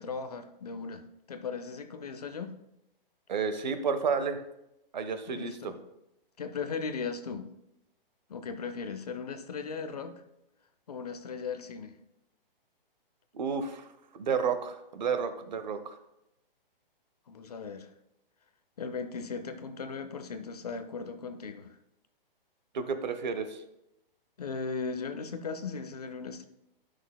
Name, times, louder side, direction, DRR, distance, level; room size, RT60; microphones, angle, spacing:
voice 1, 0.0-2.5 5.3-5.8 6.4-7.5 8.3-10.2 10.9-12.0 17.3-17.9 18.8-21.7 24.4-26.5, left 5 dB, 45° left, 9 dB, 0.5 m, -37 dB
voice 2, 3.3-4.4 4.9-5.6 13.3-16.0 22.7-23.6, right 5 dB, 50° right, 9 dB, 0.7 m, -31 dB
11.0 x 6.1 x 2.2 m, 0.86 s
hypercardioid pair, 180°, 29 cm